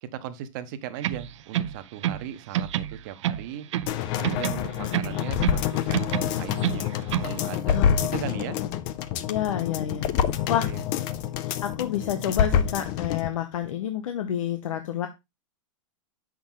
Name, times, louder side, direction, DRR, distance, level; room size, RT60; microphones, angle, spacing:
voice 1, 0.0-3.7 4.2-6.9 7.2-8.6 10.1-10.8 11.1-11.2, right 11 dB, 35° right, 0.8 m, -38 dB
sound 1, 1.0-2.3 2.5-4.0 4.2-5.7 5.9-7.4, right 11 dB, 65° right, 0.5 m, -28 dB
sound 2, 3.9-13.3 13.6-13.7, left 9 dB, 25° left, 0.3 m, -27 dB
voice 2, 9.3-10.0 10.5-10.7 11.4-15.1, left 10 dB, 85° left, 1.0 m, -29 dB
7.6 x 6.1 x 3.7 m
supercardioid pair, 175°, 17 cm